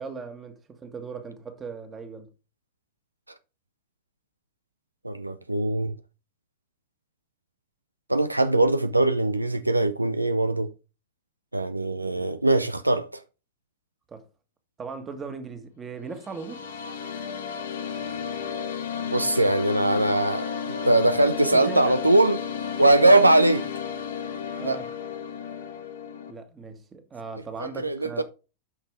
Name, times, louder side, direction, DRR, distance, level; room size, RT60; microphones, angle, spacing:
voice 1, 0.0-2.3 14.1-14.2 14.8-16.7 21.5-21.9 23.0-23.2 24.6-24.9 26.3-28.2, right 5 dB, 20° right, 1.7 m, -38 dB
voice 2, 5.0-5.9 8.1-10.7 11.5-13.1 19.1-23.6 24.6-24.8 27.6-28.2, right 2 dB, 85° right, 0.5 m, -21 dB
sound 1, 16.1-26.3, left 7 dB, 65° left, 1.6 m, -33 dB
9.0 x 5.9 x 3.5 m
figure-of-eight pair, 90°, 0 cm